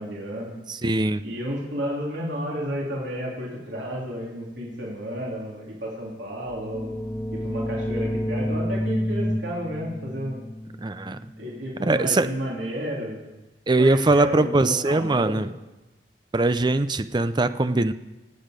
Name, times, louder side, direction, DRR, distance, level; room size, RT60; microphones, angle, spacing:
voice 1, 0.0-0.5 1.2-6.9 7.3-10.4 11.4-13.2 13.8-15.5, equal, 85° right, -3 dB, 3.1 m, -32 dB
voice 2, 0.7-1.2 10.8-11.2 11.8-12.3 13.7-15.5 16.3-17.9, right 2 dB, 25° right, 12 dB, 0.6 m, -21 dB
sound 1, 6.4-12.0, equal, 15° left, 0.9 m, -30 dB
25.5 x 8.6 x 5.1 m, 1.0 s
head